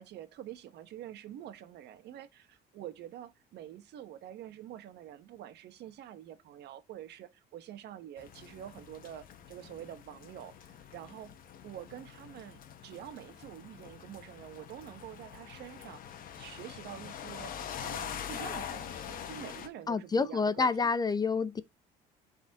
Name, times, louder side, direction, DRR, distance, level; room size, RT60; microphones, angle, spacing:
voice 1, 0.0-11.3 11.6-21.0, right 11 dB, 65° right, 1.0 m, -47 dB
sound 1, 8.2-19.7, left 8 dB, 50° left, 1.1 m, -44 dB
voice 2, 19.9-21.7, left 4 dB, 20° left, 0.5 m, -28 dB
12.0 x 4.1 x 2.8 m
cardioid pair, 125°, 19 cm